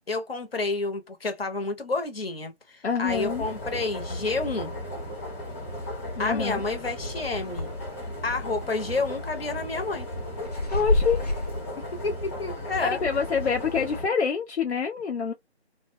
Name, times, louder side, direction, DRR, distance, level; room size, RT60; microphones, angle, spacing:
voice 1, 0.1-4.7 6.2-7.7 8.2-10.1 11.9-13.0, left 3 dB, 60° left, 1.0 m, -30 dB
voice 2, 2.8-3.5 6.2-6.6 10.7-11.2 13.0-15.3, left 6 dB, 80° left, 0.6 m, -26 dB
sound 1, 3.1-14.1, left 1 dB, 15° left, 1.0 m, -35 dB
sound 2, 7.3-7.9 8.2-8.3 9.0-9.4 10.0-11.6, left 2 dB, 40° left, 0.5 m, -27 dB
2.6 x 2.2 x 2.7 m
figure-of-eight pair, 165°, 33 cm